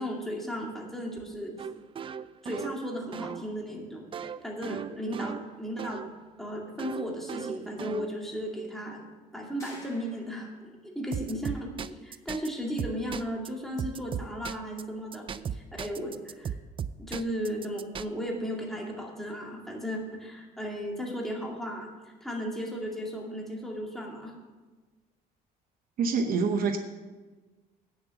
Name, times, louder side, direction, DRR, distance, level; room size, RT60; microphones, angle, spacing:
voice 1, 0.0-1.5 2.4-6.0 6.4-9.0 9.3-16.5 17.0-21.9 22.2-24.3, equal, ahead, -1 dB, 2.2 m, -35 dB
sound 1, 1.6-6.1 6.8-8.4 11.1-12.5 12.8-13.5 13.8-14.8 15.1-18.0, right 7 dB, 30° right, 0.4 m, -37 dB
sound 2, 9.6-10.7, left 1 dB, 20° left, 4.0 m, -50 dB
voice 2, 26.0-26.8, right 5 dB, 60° right, 7 dB, 0.9 m, -26 dB
8.8 x 7.1 x 6.9 m, 1.3 s
cardioid pair, 110°, 17 cm